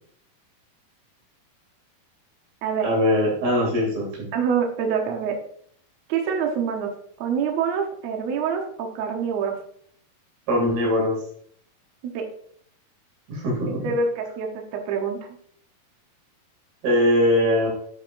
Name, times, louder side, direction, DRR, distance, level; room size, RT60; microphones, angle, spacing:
voice 1, 2.8-4.3 10.5-11.2 13.3-13.9 16.8-17.7, left 1 dB, 85° right, -2 dB, 4.6 m, -21 dB
voice 2, 4.3-5.4 6.1-6.9 7.2-9.6 12.0-12.2 13.8-15.2, right 6 dB, 65° right, 2 dB, 1.9 m, -26 dB
9.1 x 8.4 x 2.6 m, 0.64 s
omnidirectional pair, 4.2 m